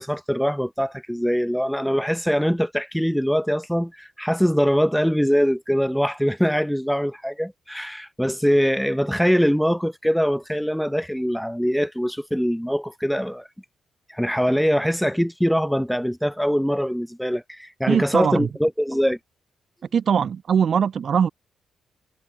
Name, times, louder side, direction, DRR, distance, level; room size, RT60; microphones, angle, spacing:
voice 1, 0.0-13.5 14.1-19.2, equal, ahead, 5.1 m, -23 dB
voice 2, 17.9-18.5 19.9-21.3, right 7 dB, 55° right, 5.7 m, -21 dB
cardioid pair, 100°, 0 cm